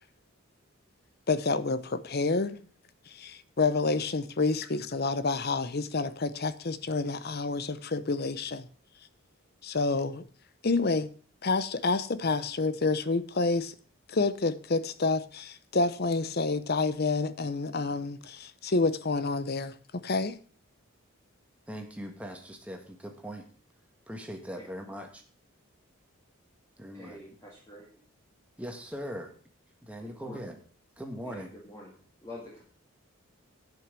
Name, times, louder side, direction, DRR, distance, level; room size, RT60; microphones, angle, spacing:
voice 1, 1.3-2.6 3.1-8.7 9.6-10.2 10.6-11.1 11.4-13.7 14.1-19.7 20.0-20.3, left 3 dB, 45° left, 0.7 m, -28 dB
voice 2, 21.7-23.5 24.1-25.2 26.8-27.2 28.6-29.3 29.8-30.6 31.0-31.5, equal, 5° right, 1.6 m, -40 dB
voice 3, 26.9-27.9 30.0-30.5 31.2-32.6, left 1 dB, 15° left, 2.1 m, -47 dB
10.5 x 6.0 x 7.5 m
head